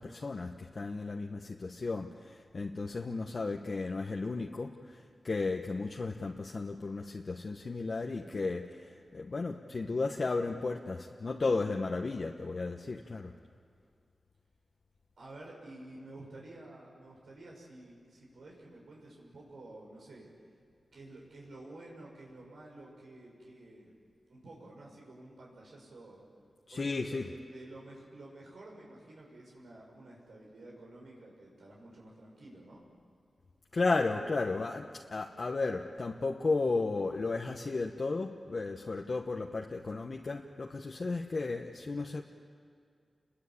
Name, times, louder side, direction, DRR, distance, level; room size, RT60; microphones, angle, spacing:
voice 1, 0.0-13.3 26.7-27.3 33.7-42.2, left 3 dB, 50° left, 2 dB, 1.1 m, -34 dB
voice 2, 15.2-20.3 20.9-24.0 24.3-26.2 26.7-32.8, right 2 dB, 85° right, -3 dB, 6.6 m, -51 dB
30.0 x 21.5 x 8.6 m, 2.2 s
wide cardioid pair, 110°, 0 cm